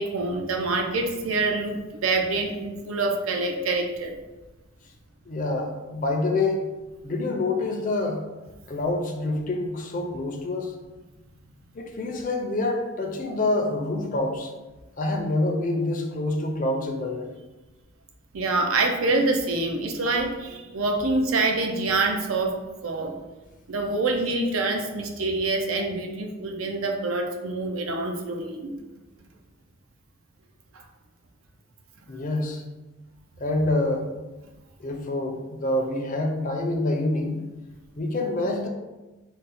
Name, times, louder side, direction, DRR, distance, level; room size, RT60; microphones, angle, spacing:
voice 1, 0.0-4.1 18.3-22.6 22.8-23.1 23.7-28.7 30.7-30.8, right 3 dB, 85° right, 3 dB, 0.5 m, -26 dB
voice 2, 5.3-6.6 7.0-8.2 8.7-10.7 11.7-14.5 15.0-17.3 32.1-32.6 33.4-34.1 34.8-37.4 38.0-38.7, left 2 dB, 40° left, 2 dB, 0.4 m, -26 dB
3.9 x 2.1 x 4.0 m, 1.1 s
head